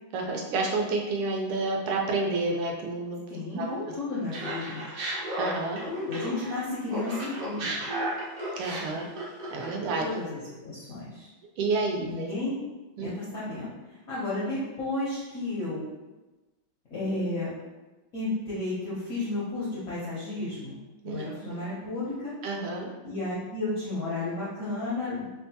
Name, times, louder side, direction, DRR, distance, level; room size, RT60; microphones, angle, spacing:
voice 1, 0.1-3.2 3.6-3.8 5.4-5.8 8.6-9.1 9.5-10.1 11.6-12.3 13.0-13.1 21.0-21.5 22.4-22.9, right 3 dB, 85° right, 0 dB, 1.5 m, -29 dB
voice 2, 3.3-4.8 5.9-7.8 9.8-11.3 12.0-12.6 13.0-15.8 16.9-17.5 18.1-20.8 21.0-22.3 23.0-25.3, left 2 dB, 70° left, -9 dB, 0.8 m, -33 dB
Laughter, 4.3-6.6 6.9-10.1, right 1 dB, 60° right, 0.9 m, -34 dB
3.6 x 2.2 x 2.7 m, 1.1 s
omnidirectional pair, 2.3 m